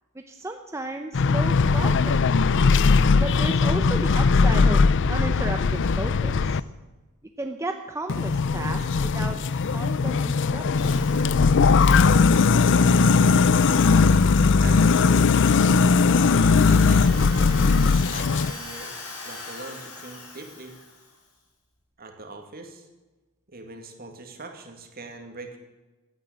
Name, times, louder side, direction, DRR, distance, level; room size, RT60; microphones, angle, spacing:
voice 1, 0.1-2.2 3.2-6.6 7.4-9.4 9.7-11.3, right 2 dB, 15° right, 5 dB, 0.8 m, -34 dB
sound 1, 1.1-6.6 8.1-18.5, left 4 dB, 55° left, 0.5 m, -19 dB
Drill, 10.7-21.1, left 3 dB, 80° left, 6.0 m, -41 dB
voice 2, 14.6-15.2 16.1-18.9 19.2-20.7 22.0-22.9 23.5-25.6, right 3 dB, 45° right, 4 dB, 2.4 m, -42 dB
16.5 x 9.5 x 8.8 m, 1.2 s
head